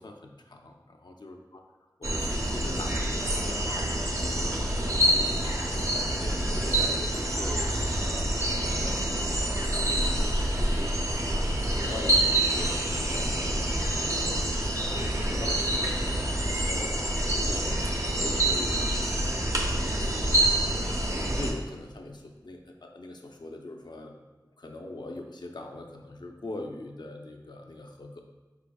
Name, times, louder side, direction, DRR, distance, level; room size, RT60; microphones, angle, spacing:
voice 1, 0.0-1.6 2.0-8.2 8.8-13.3 14.1-14.3 14.8-24.2 24.6-28.2, left 2 dB, 75° left, 2 dB, 0.5 m, -42 dB
sound 1, 2.0-21.5, right 1 dB, 40° right, 0.6 m, -27 dB
4.8 x 4.7 x 2.3 m, 1.3 s
wide cardioid pair, 45°, 8 cm